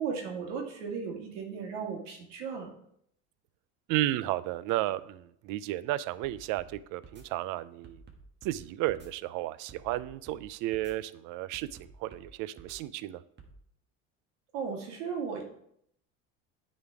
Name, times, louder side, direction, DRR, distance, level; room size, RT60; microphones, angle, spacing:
voice 1, 0.0-2.7 14.5-15.4, right 6 dB, 80° right, 1 dB, 2.2 m, -35 dB
voice 2, 3.9-8.0 8.4-11.7 12.0-13.2, right 15 dB, 60° right, 17 dB, 0.6 m, -33 dB
sound 1, 6.2-6.7 7.0-7.2 7.8-8.6 8.9-9.1 9.7-10.4 10.7-10.9 11.5-12.3 12.6-12.8 13.4-13.5, right 4 dB, 30° right, 1.7 m, -52 dB
9.4 x 4.3 x 4.7 m, 0.71 s
supercardioid pair, 90°, 36 cm